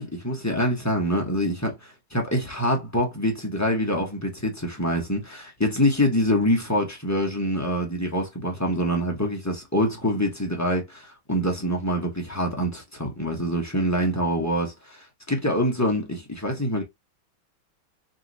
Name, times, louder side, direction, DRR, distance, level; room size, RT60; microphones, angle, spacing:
voice 1, 0.0-16.8, equal, 15° left, 0.7 m, -25 dB
3.8 x 3.0 x 4.0 m
omnidirectional pair, 2.2 m